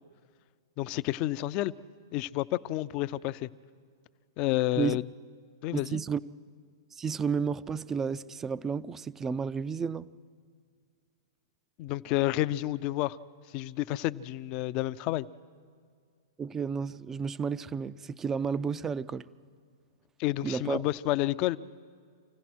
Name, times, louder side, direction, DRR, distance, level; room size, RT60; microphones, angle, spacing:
voice 1, 0.8-1.7 2.1-3.5 4.4-5.0 5.6-6.0 11.8-13.2 13.5-15.3 20.2-21.6, left 16 dB, 40° left, 0.5 m, -30 dB
voice 2, 5.7-6.2 6.9-10.1 16.4-19.3 20.4-20.8, right 6 dB, 15° right, 0.5 m, -32 dB
26.5 x 16.0 x 6.2 m
hypercardioid pair, 125°, 2 cm